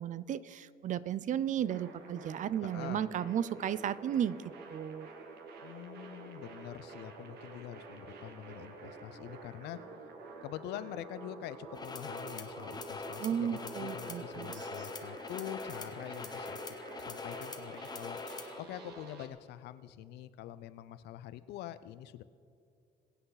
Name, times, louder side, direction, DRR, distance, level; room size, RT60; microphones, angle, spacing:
voice 1, 0.0-4.4 4.7-5.1 13.2-14.5, right 9 dB, 50° right, 18 dB, 0.5 m, -34 dB
sound 1, 1.6-19.3, right 3 dB, 70° right, 1.6 m, -49 dB
voice 2, 2.6-3.1 5.6-9.8 10.4-16.6 17.0-18.2 18.6-22.2, left 12 dB, 80° left, 14 dB, 0.6 m, -45 dB
sound 2, 11.7-18.6, left 4 dB, 25° left, 1.0 m, -43 dB
23.0 x 8.0 x 4.0 m, 2.4 s
cardioid pair, 110°, 17 cm